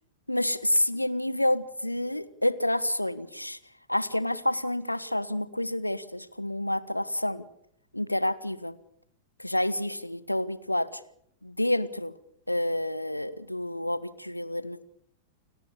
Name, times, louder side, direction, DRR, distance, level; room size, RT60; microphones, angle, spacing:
voice 1, 0.3-3.6 3.9-7.4 7.9-8.8 9.4-11.0 11.4-12.1 12.5-14.8, left 1 dB, 85° left, 16 dB, 1.3 m, -29 dB
30.0 x 18.5 x 7.1 m, 0.71 s
figure-of-eight pair, 95°, 0 cm